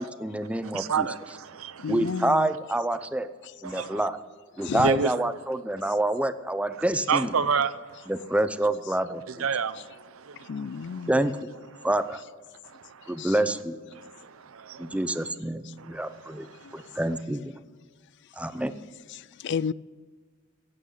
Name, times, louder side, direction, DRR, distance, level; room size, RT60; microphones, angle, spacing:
voice 1, 0.0-1.1 1.9-3.3 3.6-4.2 4.6-7.3 8.1-9.2 11.1-11.5 11.8-12.2 13.1-13.8 14.8-16.5 16.7-17.5 18.4-18.7, right 1 dB, 5° right, 0.7 m, -27 dB
voice 2, 0.5-2.5 3.6-4.1 4.6-5.3 6.7-8.3 9.3-11.1 11.7-11.9 12.6-13.6 13.9-15.3 15.8-17.0, right 6 dB, 90° right, 0.7 m, -32 dB
voice 3, 1.8-2.5 4.6-4.9 10.5-11.2 13.2-13.3 16.6-16.7 19.1-19.7, left 6 dB, 55° left, 0.4 m, -31 dB
15.0 x 8.9 x 8.2 m
head